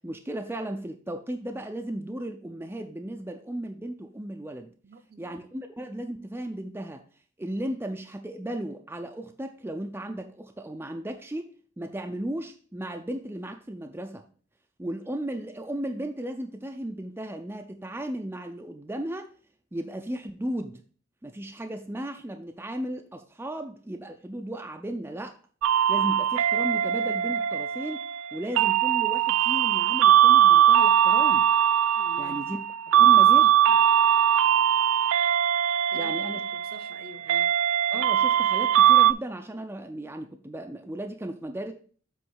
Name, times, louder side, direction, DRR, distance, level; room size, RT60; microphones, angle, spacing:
voice 1, 0.0-4.7 5.2-7.0 7.4-14.3 14.8-19.3 19.7-20.8 21.2-25.4 25.9-31.5 32.2-32.6 33.0-33.8 35.9-36.4 37.9-41.7, right 1 dB, 10° right, 0.5 m, -35 dB
voice 2, 4.8-5.4 32.0-32.5 33.0-33.3 35.9-36.1 36.5-37.6, right 3 dB, 50° right, 0.7 m, -47 dB
sound 1, 25.6-39.1, right 10 dB, 80° right, 0.3 m, -21 dB
7.7 x 3.2 x 6.3 m
head